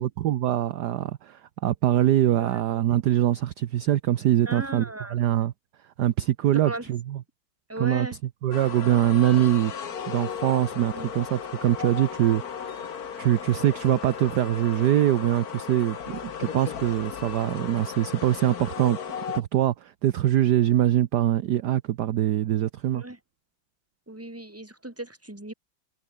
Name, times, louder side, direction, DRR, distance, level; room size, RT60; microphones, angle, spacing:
voice 1, 0.0-5.5 6.0-7.2 7.8-8.1 8.4-9.7 10.1-12.9 13.2-19.0 19.3-23.0, right 12 dB, 60° right, 1.2 m, -23 dB
voice 2, 4.5-5.2 6.6-6.9 7.7-8.2 10.8-11.1 22.9-23.2 24.1-25.5, right 1 dB, 5° right, 2.6 m, -36 dB
sound 1, 8.5-19.4, left 7 dB, 50° left, 1.8 m, -36 dB
omnidirectional pair, 2.3 m